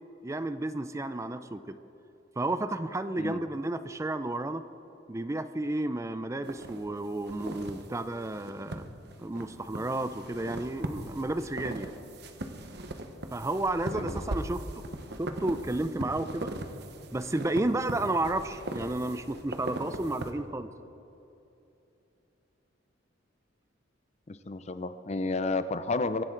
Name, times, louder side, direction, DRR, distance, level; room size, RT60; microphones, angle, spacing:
voice 1, 0.2-1.8 2.4-4.6 5.1-8.9 9.2-11.9 13.3-14.6 15.2-16.5 17.1-20.7, right 2 dB, 15° right, 11 dB, 0.4 m, -32 dB
sound 1, 6.4-20.3, right 1 dB, 60° right, 1.1 m, -40 dB
voice 2, 24.3-26.2, left 3 dB, 35° left, 12 dB, 0.5 m, -31 dB
24.0 x 11.0 x 3.9 m, 2.9 s
head